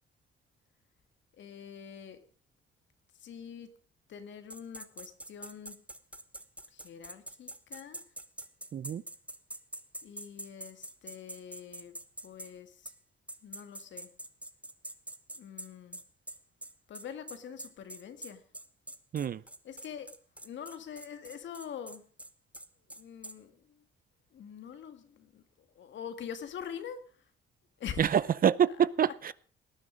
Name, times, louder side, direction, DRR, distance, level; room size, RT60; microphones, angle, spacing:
voice 1, 1.4-2.2 3.2-3.7 4.1-5.8 6.7-8.0 10.0-11.9 12.2-12.9 13.4-14.1 15.3-16.0 16.9-18.4 19.6-20.1 20.4-22.0 23.0-23.5 24.3-27.0 27.8-28.2 29.0-29.1, left 8 dB, 70° left, 2.2 m, -44 dB
sound 1, 4.5-12.5 12.8-13.0 13.3-23.4, right 1 dB, 5° right, 1.1 m, -45 dB
voice 2, 8.7-9.0 19.1-19.4 28.0-29.3, right 8 dB, 45° right, 0.6 m, -26 dB
18.5 x 9.7 x 5.1 m
cardioid pair, 90°, 20 cm